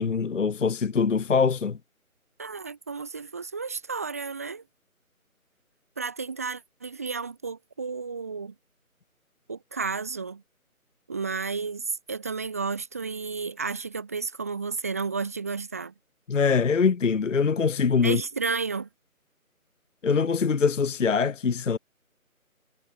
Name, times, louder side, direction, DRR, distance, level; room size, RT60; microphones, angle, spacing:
voice 1, 0.0-1.8 16.3-18.2 20.0-21.8, left 5 dB, 60° left, 0.6 m, -23 dB
voice 2, 2.4-4.6 6.0-8.5 9.5-10.4 11.1-15.9 18.0-18.9, right 4 dB, 10° right, 2.0 m, -32 dB
figure-of-eight pair, 170°, 43 cm